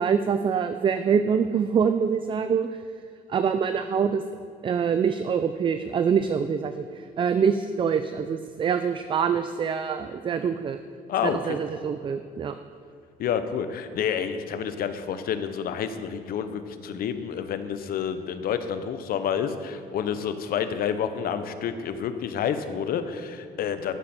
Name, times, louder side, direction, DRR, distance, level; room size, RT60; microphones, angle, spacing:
voice 1, 0.0-2.7 3.3-4.2 4.6-10.8 11.2-12.6, right 6 dB, 30° right, 10 dB, 0.4 m, -25 dB
voice 2, 11.1-11.6 13.2-24.0, left 8 dB, 60° left, 10 dB, 0.8 m, -29 dB
13.0 x 7.5 x 4.3 m, 2.3 s
cardioid pair, 110°, 17 cm